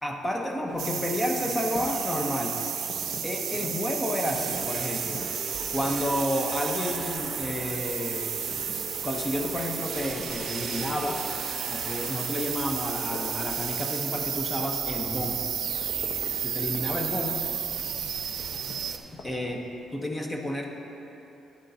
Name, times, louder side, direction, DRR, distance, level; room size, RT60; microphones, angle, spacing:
voice 1, 0.0-2.6 3.2-5.2 5.7-8.4 9.0-11.2 11.7-15.5 16.4-17.5 19.1-20.7, left 1 dB, 20° left, 1 dB, 0.8 m, -31 dB
sound 1, 0.7-19.8, left 2 dB, 60° left, 0.9 m, -45 dB
sound 2, 0.8-19.0, right 8 dB, 70° right, 0.6 m, -32 dB
sound 3, 4.3-12.2, equal, 40° left, 1.9 m, -41 dB
10.5 x 8.8 x 2.7 m, 3.0 s
cardioid pair, 90°, 0 cm